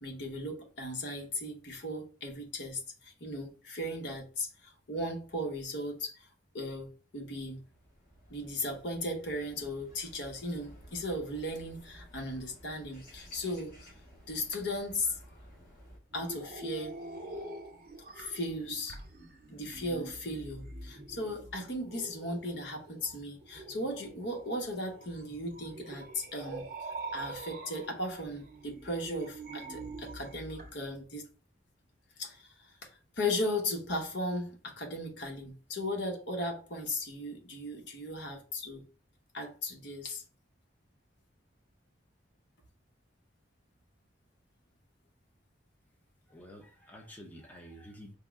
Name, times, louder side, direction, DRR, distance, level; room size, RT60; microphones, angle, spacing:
voice 1, 0.0-6.3 6.5-7.6 8.3-13.9 14.3-15.2 16.1-17.0 18.1-19.0 19.5-31.3 32.2-38.9 39.3-40.2, left 1 dB, 75° left, 1.0 m, -37 dB
sound 1, 7.2-16.0, equal, 50° left, 1.3 m, -55 dB
sound 2, 16.1-30.7, right 2 dB, 50° right, 0.8 m, -45 dB
voice 2, 46.3-48.2, equal, 10° left, 0.6 m, -50 dB
4.5 x 2.1 x 3.5 m
head